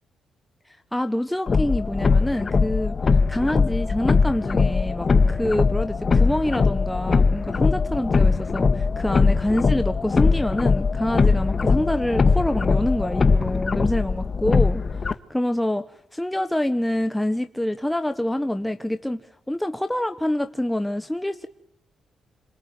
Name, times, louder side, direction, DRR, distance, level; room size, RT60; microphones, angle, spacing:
voice 1, 0.7-21.5, left 1 dB, 5° left, 8 dB, 1.3 m, -26 dB
sound 1, 1.5-15.1, left 4 dB, 40° left, 1.8 m, -21 dB
27.5 x 20.0 x 9.5 m, 0.78 s
cardioid pair, 90°, 0 cm